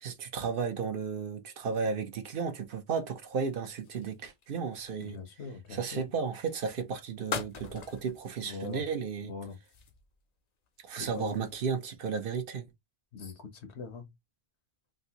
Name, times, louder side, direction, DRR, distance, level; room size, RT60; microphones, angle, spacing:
voice 1, 0.0-5.2 5.7-9.3 10.8-12.7, right 5 dB, 60° right, 0.8 m, -34 dB
sound 1, 3.0-5.4 6.3-6.6 7.3-8.3 8.6-9.0 9.4-10.3 10.7-11.9, left 6 dB, 50° left, 0.5 m, -43 dB
voice 2, 5.0-6.1 8.4-8.8 9.2-9.6 11.0-11.4 13.1-14.1, left 5 dB, 85° left, 1.1 m, -42 dB
3.2 x 2.5 x 2.8 m
omnidirectional pair, 1.1 m